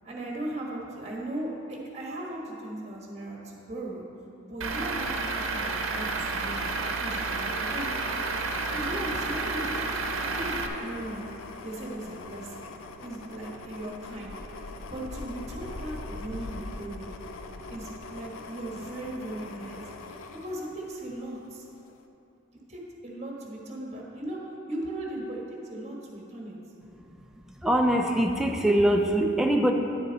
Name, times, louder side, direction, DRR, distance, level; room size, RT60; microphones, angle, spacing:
voice 1, 0.0-4.0 4.4-6.7 7.0-8.0 8.7-9.8 10.1-11.2 11.6-12.7 13.0-14.4 14.9-17.1 17.7-19.8 20.3-21.7 22.7-24.4 24.7-26.6, right 1 dB, 30° right, -2 dB, 1.4 m, -37 dB
Truck / Idling, 4.6-10.7, right 3 dB, 80° right, 0.8 m, -30 dB
sound 1, 7.7-21.4 21.8-22.0, left 3 dB, 85° left, 0.5 m, -42 dB
voice 2, 27.6-29.7, right 1 dB, ahead, 2 dB, 0.4 m, -23 dB
9.8 x 7.0 x 4.0 m, 2.9 s
head